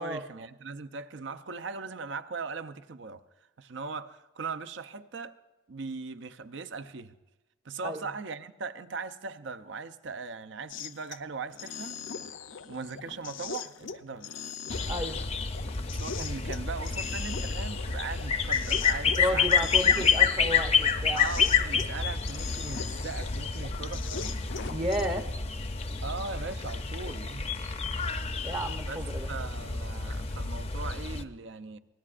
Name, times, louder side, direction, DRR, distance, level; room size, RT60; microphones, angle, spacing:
voice 1, 0.0-3.2 3.6-5.4 5.7-7.2 7.6-12.0 12.7-14.3 15.8-19.7 21.1-24.4 26.0-27.5 28.9-31.8, right 4 dB, 65° right, 0.6 m, -39 dB
sound 1, 10.7-11.2 11.5-21.9 22.2-25.1, left 6 dB, 75° left, 0.6 m, -41 dB
sound 2, 14.7-31.2, left 6 dB, 30° left, 0.6 m, -29 dB
voice 2, 14.9-15.2 19.2-21.2 24.7-25.3 28.4-29.3, equal, 25° right, 0.7 m, -32 dB
24.5 x 18.5 x 2.5 m
head